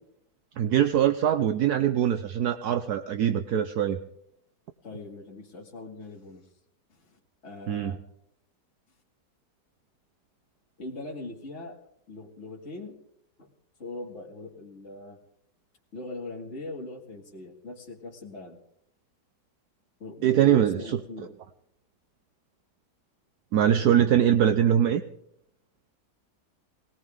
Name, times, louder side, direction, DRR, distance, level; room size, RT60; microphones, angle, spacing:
voice 1, 0.6-4.0 7.7-7.9 20.2-21.0 23.5-25.0, right 10 dB, 70° right, 10 dB, 1.2 m, -22 dB
voice 2, 4.8-6.5 6.9-8.0 10.8-11.8 12.1-13.0 13.4-13.5 13.8-15.2 15.9-18.6 20.0-21.3, left 2 dB, 40° left, -3 dB, 2.3 m, -41 dB
20.0 x 18.0 x 3.6 m, 0.70 s
omnidirectional pair, 1.9 m